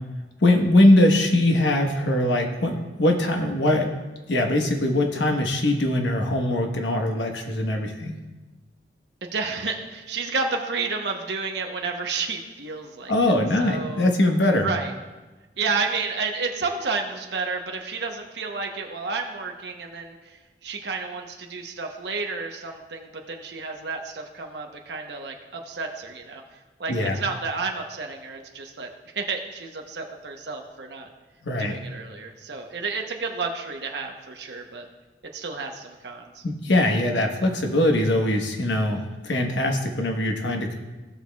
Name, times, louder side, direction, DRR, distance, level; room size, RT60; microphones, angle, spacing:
voice 1, 0.4-3.9 4.3-8.2 13.1-14.7 26.9-27.2 31.4-31.7 36.4-40.8, left 1 dB, 80° left, 2 dB, 1.2 m, -21 dB
voice 2, 9.2-13.3 13.6-14.1 14.6-14.9 15.6-26.4 26.8-28.9 29.1-31.1 31.6-34.8 35.3-36.4, right 4 dB, 70° right, 2 dB, 0.9 m, -31 dB
16.0 x 6.2 x 2.3 m, 1.2 s
head